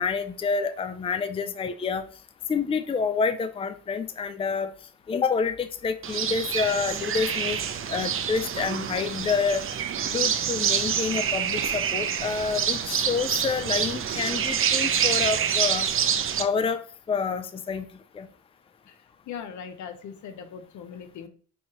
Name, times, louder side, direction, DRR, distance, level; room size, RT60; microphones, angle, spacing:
voice 1, 0.0-2.0 2.5-4.7 5.1-7.6 7.9-9.6 10.1-15.9 16.4-16.8 17.1-17.9 18.1-18.3, left 5 dB, 20° left, 9 dB, 0.4 m, -28 dB
sound 1, 6.0-16.4, right 8 dB, 45° right, 0.6 m, -27 dB
voice 2, 19.3-21.3, left 7 dB, 70° left, 8 dB, 0.8 m, -39 dB
5.5 x 2.8 x 2.9 m, 0.43 s
cardioid pair, 90°, 30 cm